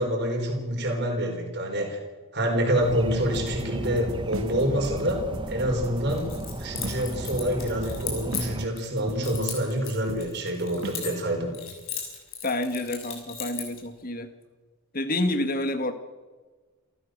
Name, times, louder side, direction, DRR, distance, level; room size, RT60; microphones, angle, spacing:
voice 1, 0.0-2.0 2.3-6.3 6.5-11.5, equal, 50° right, 2 dB, 4.6 m, -27 dB
sound 1, 2.8-8.7, right 1 dB, 20° right, 0.7 m, -35 dB
sound 2, 3.3-11.2, right 2 dB, 70° right, 1.6 m, -41 dB
Keys jangling, 6.1-8.8 9.2-11.3 11.5-13.8, left 8 dB, 65° left, 6.5 m, -36 dB
voice 2, 12.4-14.3 14.9-15.9, left 1 dB, 40° left, 9 dB, 1.9 m, -28 dB
28.5 x 14.0 x 6.6 m, 1.3 s
head